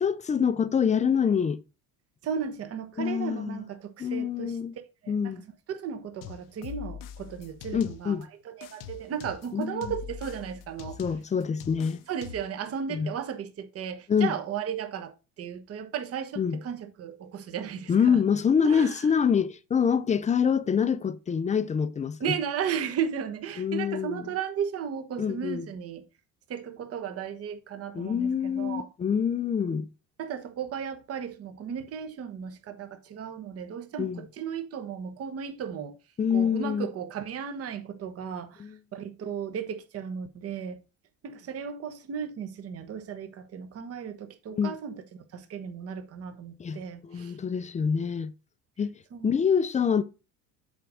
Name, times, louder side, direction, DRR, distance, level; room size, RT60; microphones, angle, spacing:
voice 1, 0.0-1.6 3.0-3.6 4.0-4.7 5.1-5.4 7.7-8.3 9.5-9.9 11.0-12.0 12.9-13.1 14.1-14.3 16.4-16.6 17.9-22.2 23.6-24.3 25.2-25.7 27.9-29.9 34.0-34.2 36.2-36.9 38.6-38.8 44.6-44.7 46.6-48.3 48.8-50.0, left 7 dB, 20° left, 0.5 m, -26 dB
voice 2, 2.2-4.6 5.0-5.4 5.7-8.2 8.4-11.0 12.1-18.2 18.6-19.1 22.2-26.1 26.5-28.9 30.2-36.0 36.3-40.8 41.2-47.4 49.1-49.3, right 8 dB, 40° right, 1.1 m, -35 dB
sound 1, 6.2-8.2 8.6-12.6, left 9 dB, 65° left, 0.7 m, -43 dB
7.8 x 4.0 x 4.8 m
cardioid pair, 130°, 35 cm